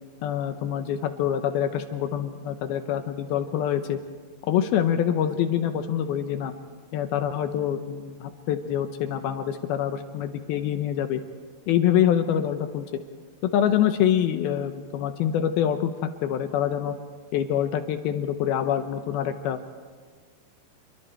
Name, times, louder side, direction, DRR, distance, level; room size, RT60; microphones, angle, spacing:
voice 1, 0.2-4.0 4.4-6.5 6.9-11.2 11.7-13.0 13.4-15.9 16.2-17.0 17.3-19.6, left 10 dB, 75° left, 8 dB, 2.3 m, -25 dB
28.5 x 23.5 x 4.5 m, 1.5 s
omnidirectional pair, 5.2 m